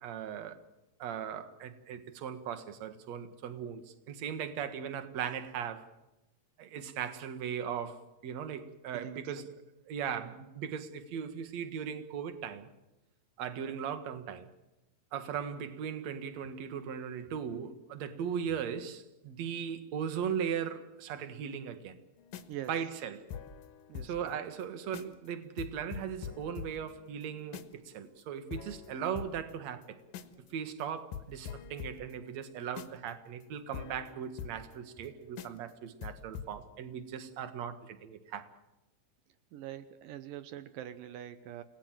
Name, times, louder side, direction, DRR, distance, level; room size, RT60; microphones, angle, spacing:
voice 1, 0.0-0.6 1.0-5.9 6.6-9.5 9.9-12.7 13.4-14.5 15.1-22.0 22.7-23.2 24.0-30.0 30.5-38.5, right 8 dB, 60° right, 1.9 m, -38 dB
voice 2, 8.9-9.5 22.5-22.7 23.9-24.4 39.5-41.6, right 12 dB, 90° right, 1.9 m, -44 dB
sound 1, 22.2-24.3 24.6-24.7 24.9-25.3 25.6-27.9 28.2-28.3 28.5-30.5 30.8-30.9 31.1-35.1 35.4-35.7 36.0-36.5, left 8 dB, 65° left, 2.5 m, -45 dB
29.5 x 19.0 x 7.6 m
omnidirectional pair, 5.3 m